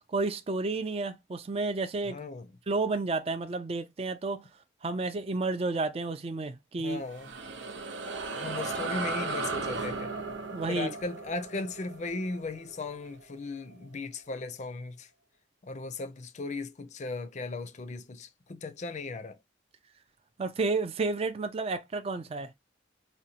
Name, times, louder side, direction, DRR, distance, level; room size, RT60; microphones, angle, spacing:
voice 1, 0.1-2.2 2.7-4.4 4.8-7.0 10.5-10.9 20.4-22.5, right 3 dB, 35° right, 0.4 m, -31 dB
voice 2, 2.1-2.5 6.8-7.3 8.4-10.1 10.7-15.1 15.6-19.4, left 3 dB, 40° left, 0.5 m, -37 dB
sound 1, 6.9-13.7, right 3 dB, 90° right, 0.7 m, -36 dB
5.0 x 2.2 x 2.8 m
head